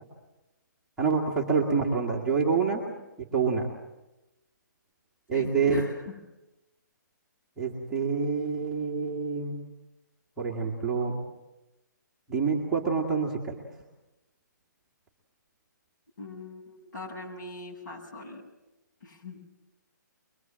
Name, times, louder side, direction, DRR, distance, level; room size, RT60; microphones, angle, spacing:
voice 1, 1.0-2.8 3.2-3.7 5.3-5.8 7.6-9.6 10.4-11.2 12.3-13.6, right 5 dB, 5° right, -4 dB, 1.8 m, -27 dB
voice 2, 5.3-6.2 16.2-18.4 19.0-19.5, left 3 dB, 65° left, 0 dB, 7.6 m, -42 dB
23.0 x 23.0 x 7.4 m, 1.0 s
hypercardioid pair, 170°, 10 cm